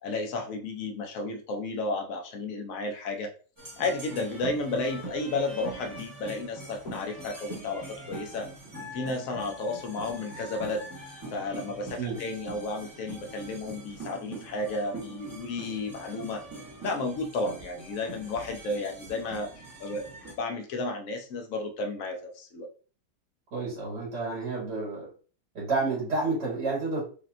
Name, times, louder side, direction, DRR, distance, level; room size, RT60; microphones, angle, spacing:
voice 1, 0.0-3.3 3.8-8.5 8.9-10.8 11.3-16.4 16.8-20.1 20.4-22.7, left 2 dB, 60° left, 3 dB, 1.1 m, -32 dB
sound 1, 3.6-20.4, right 2 dB, 15° right, 1.2 m, -43 dB
voice 2, 23.5-25.1 25.5-27.0, right 3 dB, 75° right, -5 dB, 2.4 m, -30 dB
5.1 x 2.8 x 2.5 m, 0.38 s
omnidirectional pair, 1.8 m